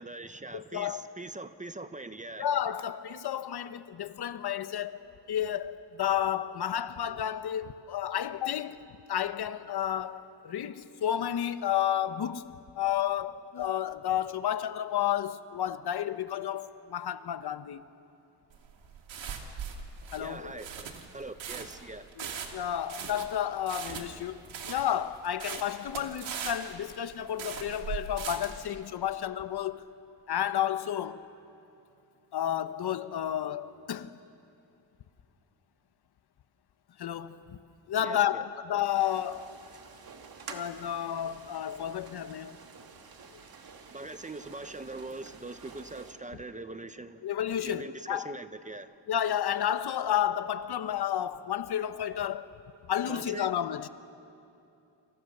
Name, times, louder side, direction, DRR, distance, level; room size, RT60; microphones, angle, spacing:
voice 1, 0.0-2.5 20.2-22.1 38.0-38.4 43.9-47.2 47.6-48.9 53.1-53.5, right 2 dB, 15° right, 0.7 m, -42 dB
voice 2, 0.5-1.1 2.4-17.8 20.1-20.6 22.2-29.9 30.3-31.3 32.3-34.2 37.0-37.6 37.9-39.6 40.5-42.6 47.2-48.3 49.1-52.5 52.9-53.9, left 10 dB, 60° left, 1.0 m, -31 dB
sound 1, 18.5-28.6, right 7 dB, 85° right, 2.7 m, -40 dB
sound 2, 38.9-46.1, right 5 dB, 50° right, 2.4 m, -49 dB
29.0 x 27.0 x 6.7 m
wide cardioid pair, 140°, 44 cm